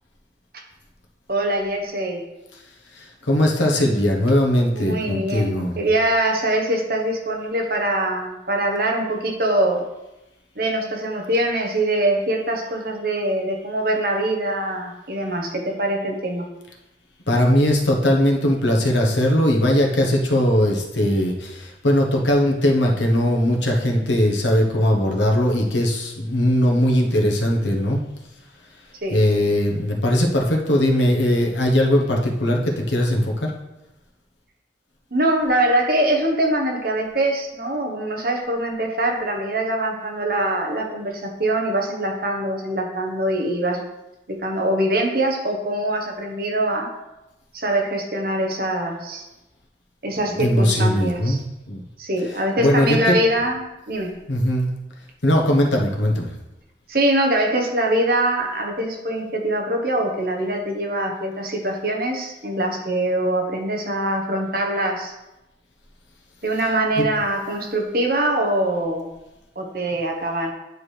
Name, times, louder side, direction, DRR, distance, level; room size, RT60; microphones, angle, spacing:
voice 1, 1.3-2.2 4.7-9.8 10.5-16.5 29.0-29.2 35.1-43.8 44.4-46.9 47.5-49.2 50.0-51.4 52.0-53.6 53.9-54.1 56.9-65.1 66.4-69.1 69.6-70.5, right 1 dB, 55° right, 1 dB, 1.1 m, -23 dB
voice 2, 2.9-5.8 17.3-28.0 29.1-33.5 50.1-51.8 52.2-53.2 54.3-54.7 55.2-56.3 66.6-67.1, left 1 dB, 80° left, 0 dB, 1.2 m, -20 dB
9.5 x 4.7 x 3.4 m, 0.95 s
head